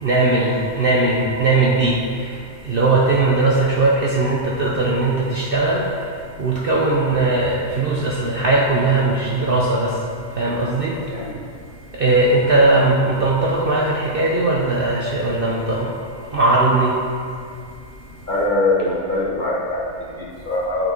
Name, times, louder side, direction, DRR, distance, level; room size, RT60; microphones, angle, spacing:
voice 1, 0.0-5.9 6.4-10.0 10.3-11.0 11.9-16.0 16.3-17.0, right 2 dB, 50° right, -3 dB, 0.8 m, -19 dB
voice 2, 18.3-20.9, left 2 dB, 35° left, -5 dB, 1.1 m, -22 dB
9.9 x 4.4 x 4.5 m, 2.3 s
omnidirectional pair, 1.5 m